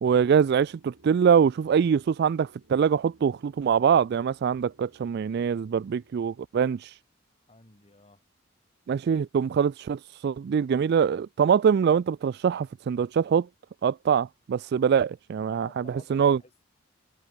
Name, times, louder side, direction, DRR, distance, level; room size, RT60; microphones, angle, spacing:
voice 1, 0.0-6.9 8.9-13.5 13.8-16.4, right 7 dB, 55° right, 0.3 m, -24 dB
sound 1, 0.5-6.5, right 1 dB, 90° right, 6.5 m, -61 dB
voice 2, 7.5-8.2 15.4-16.7, left 2 dB, 30° left, 4.3 m, -53 dB
head